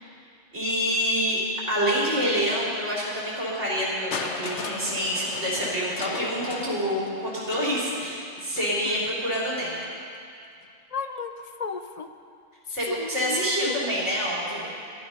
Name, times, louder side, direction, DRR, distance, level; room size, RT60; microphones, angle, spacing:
voice 1, 0.5-1.4 1.7-9.8 12.7-14.6, equal, 75° right, -6 dB, 4.0 m, -27 dB
Crushing, 4.1-10.0 11.0-11.1, left 5 dB, 75° left, 1.2 m, -38 dB
voice 2, 10.9-11.3 11.6-12.1 12.9-13.8, left 5 dB, 45° left, 7 dB, 0.6 m, -34 dB
14.0 x 12.0 x 5.7 m, 2.4 s
omnidirectional pair, 1.2 m